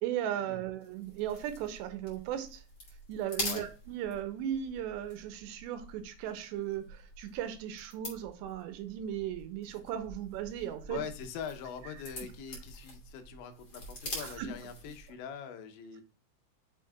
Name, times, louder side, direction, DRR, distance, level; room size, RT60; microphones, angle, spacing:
voice 1, 0.0-2.6 3.1-11.0 14.2-14.5, right 10 dB, 80° right, 3.0 m, -37 dB
sound 1, 0.8-15.2, left 1 dB, 30° left, 2.9 m, -45 dB
voice 2, 10.9-16.0, left 7 dB, 85° left, 3.3 m, -43 dB
7.4 x 7.1 x 2.3 m
omnidirectional pair, 5.2 m